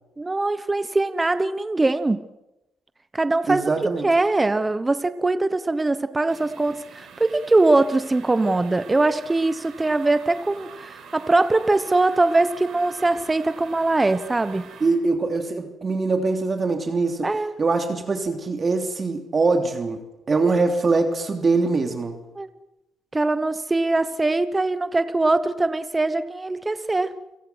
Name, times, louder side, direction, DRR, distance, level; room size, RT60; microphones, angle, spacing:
voice 1, 0.2-2.2 3.1-3.6 4.0-14.7 17.2-17.5 22.4-22.5 23.1-27.1, right 2 dB, 20° right, 1.0 m, -22 dB
voice 2, 3.5-4.1 14.8-17.3 17.6-20.0 20.3-22.2, right 3 dB, 35° right, 3.1 m, -23 dB
sound 1, 6.3-14.9, right 6 dB, 75° right, 6.2 m, -44 dB
29.5 x 17.5 x 6.3 m
cardioid pair, 90°, 0 cm